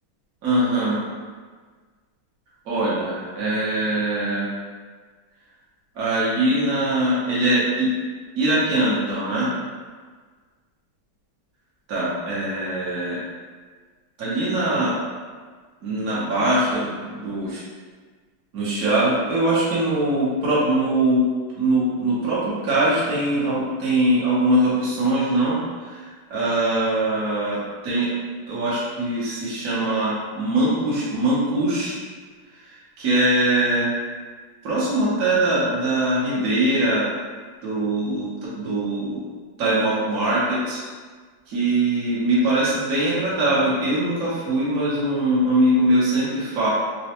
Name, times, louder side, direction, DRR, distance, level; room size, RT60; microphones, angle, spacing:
voice 1, 0.4-1.0 2.6-4.5 5.9-7.9 8.4-9.5 11.9-13.2 14.2-14.9 15.8-17.6 18.5-21.3 21.6-28.1 28.5-32.0 32.5-33.9 34.6-37.1 37.6-39.2 39.6-40.8 41.5-46.7, right 1 dB, 55° right, -9 dB, 1.1 m, -22 dB
4.1 x 2.2 x 2.9 m, 1.5 s
omnidirectional pair, 2.2 m